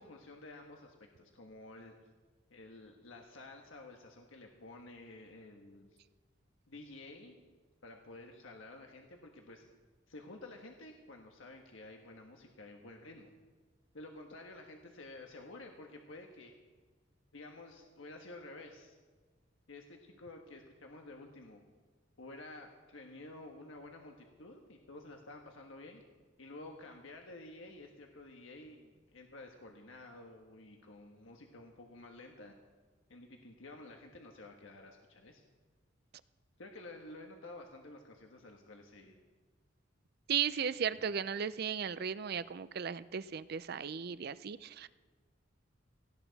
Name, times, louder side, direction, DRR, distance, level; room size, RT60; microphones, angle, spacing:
voice 1, 0.0-1.9 2.5-6.0 6.7-7.4 7.8-9.6 10.1-13.3 13.9-16.5 17.3-19.0 19.7-21.6 22.2-26.0 26.4-32.5 33.1-35.4 36.6-39.2, left 2 dB, 90° left, 2 dB, 1.4 m, -51 dB
voice 2, 40.3-44.9, right 7 dB, 55° right, 16 dB, 0.5 m, -36 dB
17.5 x 16.5 x 4.1 m, 1.4 s
head